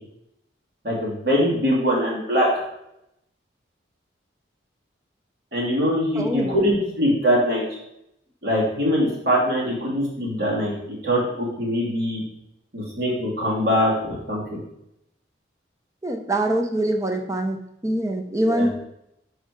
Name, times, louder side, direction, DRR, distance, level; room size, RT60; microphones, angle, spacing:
voice 1, 0.8-2.5 5.5-7.6 8.4-10.7 11.0-12.2 12.7-14.6 18.4-18.7, equal, 55° right, -5 dB, 2.8 m, -22 dB
voice 2, 6.2-6.5 16.0-17.6 17.8-18.8, right 1 dB, 15° right, 4 dB, 0.7 m, -24 dB
6.9 x 5.0 x 4.7 m, 0.81 s
head